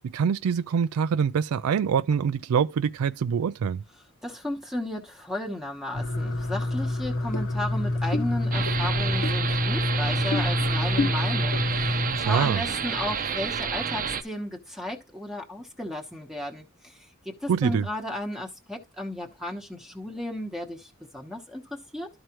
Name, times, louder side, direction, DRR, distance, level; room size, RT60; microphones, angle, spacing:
voice 1, 0.0-3.8 12.2-12.6 17.5-17.9, right 7 dB, 85° right, 0.4 m, -25 dB
voice 2, 4.2-22.1, left 1 dB, ahead, 1.0 m, -34 dB
sound 1, 5.9-12.3, left 2 dB, 60° left, 1.0 m, -27 dB
sound 2, 8.5-14.2, right 6 dB, 40° right, 0.7 m, -30 dB
12.5 x 4.7 x 3.0 m
head